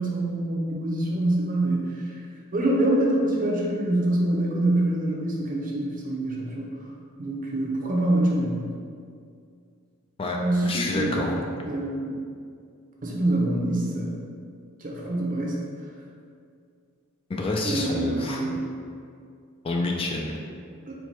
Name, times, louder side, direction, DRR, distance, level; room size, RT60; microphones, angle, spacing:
voice 1, 0.0-2.2 2.5-6.7 7.2-8.6 10.4-12.1 13.0-14.1 14.8-15.5 17.6-18.5 20.9-21.0, right 1 dB, 40° right, -2 dB, 0.7 m, -25 dB
voice 2, 10.2-11.3 17.3-18.4 19.6-20.4, left 2 dB, 25° left, 0 dB, 0.3 m, -28 dB
4.5 x 2.3 x 4.1 m, 2.3 s
head